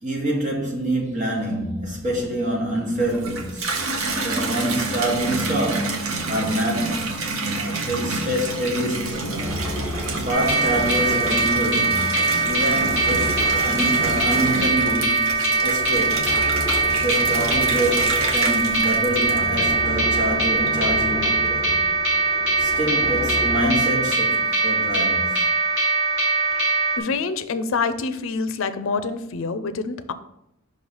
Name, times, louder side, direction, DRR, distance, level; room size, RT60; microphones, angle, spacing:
voice 1, 0.0-3.7 4.2-7.1 7.5-9.6 10.2-16.3 17.0-21.7 22.6-25.5 28.9-29.1, right 1 dB, 35° right, 1.4 m, -26 dB
Water tap faucet / Bathtub (filling or washing), 3.0-19.9 20.4-21.0, right 3 dB, 90° right, 0.9 m, -29 dB
sound 1, 9.2-23.7, left 1 dB, 10° right, 1.2 m, -33 dB
sound 2, 10.3-27.0, right 3 dB, 60° right, 1.1 m, -22 dB
voice 2, 27.0-30.1, left 4 dB, 70° left, 0.5 m, -26 dB
5.5 x 3.2 x 5.4 m
head